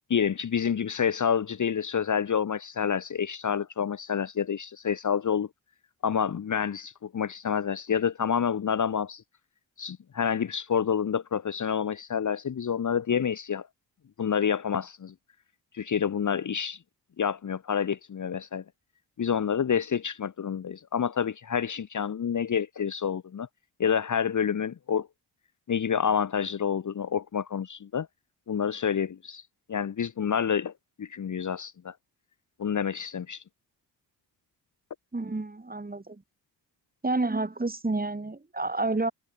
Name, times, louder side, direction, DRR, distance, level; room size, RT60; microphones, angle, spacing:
voice 1, 0.1-5.5 6.0-9.2 9.8-13.7 14.2-15.1 15.7-16.8 17.2-18.6 19.2-23.5 23.8-25.1 25.7-28.1 28.5-29.4 29.7-30.7 31.0-31.9 32.6-33.4, left 7 dB, 45° left, 1.2 m, -28 dB
voice 2, 35.1-36.2 37.0-39.1, right 2 dB, 20° right, 4.6 m, -29 dB
cardioid pair, 70°, 43 cm